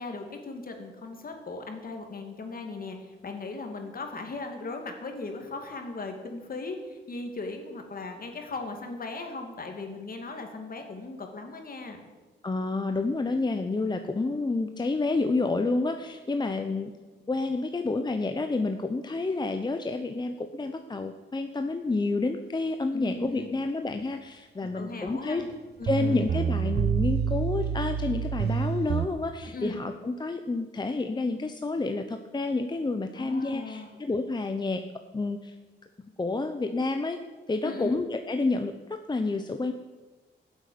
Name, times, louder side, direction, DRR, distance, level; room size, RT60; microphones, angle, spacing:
voice 1, 0.0-12.0 22.9-23.5 24.6-25.5 25.8-26.2 29.4-29.8 33.2-33.9 37.6-38.0, left 3 dB, 45° left, 4 dB, 2.6 m, -38 dB
voice 2, 12.4-16.9 17.3-25.4 25.8-34.8 35.1-35.6 36.2-37.2 37.5-39.7, left 3 dB, 20° left, 6 dB, 0.8 m, -29 dB
sound 1, 25.5-25.6 25.8-29.1, right 7 dB, 60° right, 0.8 m, -27 dB
13.5 x 8.3 x 9.4 m, 1.3 s
cardioid pair, 100°, 20 cm